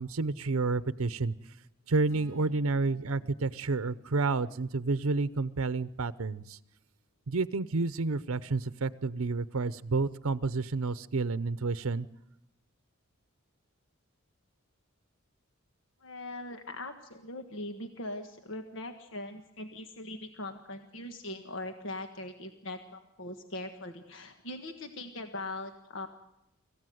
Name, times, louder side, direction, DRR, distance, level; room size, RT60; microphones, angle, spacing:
voice 1, 0.0-1.3 1.9-6.6 7.3-12.1, right 3 dB, 80° right, 14 dB, 0.7 m, -30 dB
sound 1, 2.1-6.3, right 3 dB, 85° left, 6.0 m, -59 dB
voice 2, 16.0-26.1, left 2 dB, 65° left, 6 dB, 1.5 m, -41 dB
26.0 x 15.5 x 7.9 m, 0.86 s
head